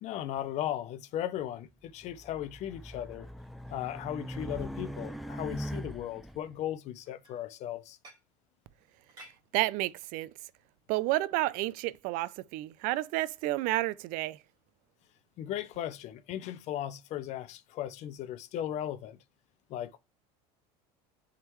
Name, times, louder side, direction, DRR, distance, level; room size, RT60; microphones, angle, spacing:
voice 1, 0.0-3.3 3.7-8.0 15.4-19.2 19.7-20.0, left 11 dB, 50° left, 0.6 m, -37 dB
Race car auto racing, 2.0-6.4, equal, ahead, 0.4 m, -40 dB
sound 1, 7.0-8.4 8.9-9.4 10.2-10.4 11.2-11.6 12.1-12.2 12.7-12.8 14.1-14.2 14.9-15.1, right 1 dB, 25° right, 2.5 m, -56 dB
voice 2, 9.5-10.3 10.9-14.4, right 17 dB, 65° right, 0.4 m, -30 dB
10.5 x 3.7 x 3.1 m
cardioid pair, 140°, 15 cm